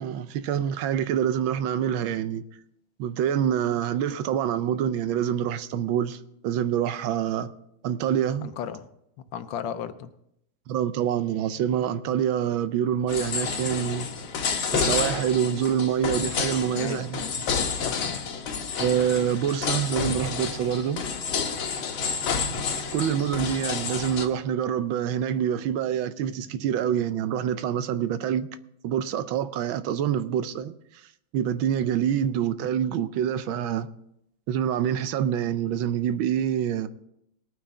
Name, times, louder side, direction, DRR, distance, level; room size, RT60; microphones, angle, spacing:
voice 1, 0.0-2.4 3.0-7.5 7.8-8.5 10.7-14.1 14.7-17.3 18.8-21.0 22.9-28.5 28.8-30.7 31.3-33.9 34.5-36.9, right 9 dB, 85° right, 1.5 m, -26 dB
voice 2, 8.4-8.9 9.3-10.1 16.6-17.1 17.8-18.3, left 9 dB, 75° left, 1.5 m, -35 dB
sound 1, 13.1-24.3, left 5 dB, 90° left, 1.9 m, -29 dB
20.0 x 9.2 x 3.7 m
omnidirectional pair, 2.1 m